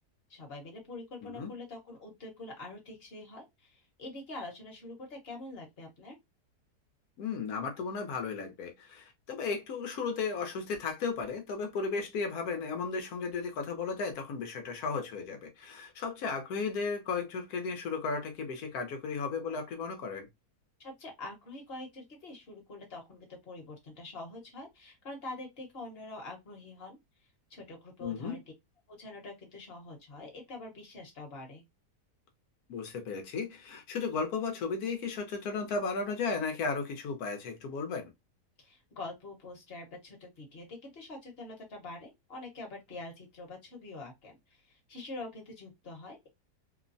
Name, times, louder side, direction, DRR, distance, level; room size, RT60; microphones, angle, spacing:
voice 1, 0.3-6.2 20.8-27.0 27.5-28.4 28.9-31.6 38.6-46.3, left 2 dB, 40° left, 1.1 m, -45 dB
voice 2, 7.2-20.3 28.0-28.4 32.7-38.1, left 4 dB, 70° left, 1.2 m, -35 dB
3.1 x 2.1 x 2.5 m
omnidirectional pair, 1.8 m